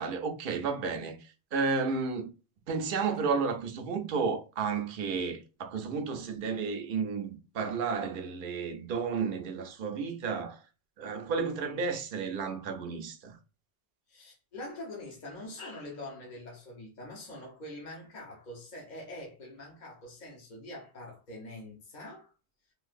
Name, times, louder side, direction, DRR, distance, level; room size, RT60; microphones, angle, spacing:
voice 1, 0.0-2.3 2.7-10.6 11.0-13.4, right 5 dB, 55° right, 0.7 m, -32 dB
voice 2, 14.1-22.3, left 1 dB, 45° left, 0.9 m, -44 dB
3.2 x 2.7 x 2.5 m
omnidirectional pair, 1.2 m